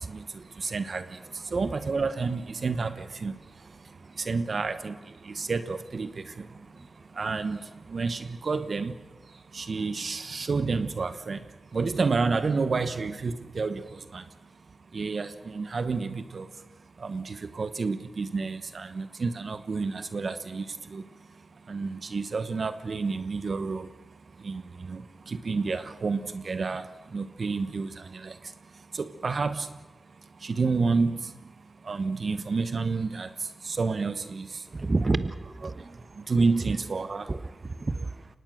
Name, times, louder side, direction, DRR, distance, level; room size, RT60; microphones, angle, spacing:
voice 1, 0.6-1.0 1.5-3.3 4.3-5.0 5.3-6.5 7.2-7.6 7.9-8.9 9.5-11.4 11.7-13.8 14.1-14.2 14.9-16.5 17.0-20.7 20.9-21.0 21.7-23.9 24.4-24.6 24.9-25.0 25.3-26.9 27.1-28.3 28.9-29.7 30.4-31.2 31.9-33.3 33.6-34.5 35.6-35.7 36.3-37.3, right 4 dB, 65° right, 11 dB, 1.1 m, -29 dB
voice 2, 34.7-36.0 37.3-37.4 37.6-38.2, right 3 dB, 45° right, 12 dB, 1.1 m, -29 dB
23.5 x 18.5 x 6.4 m, 1.2 s
cardioid pair, 45°, 0 cm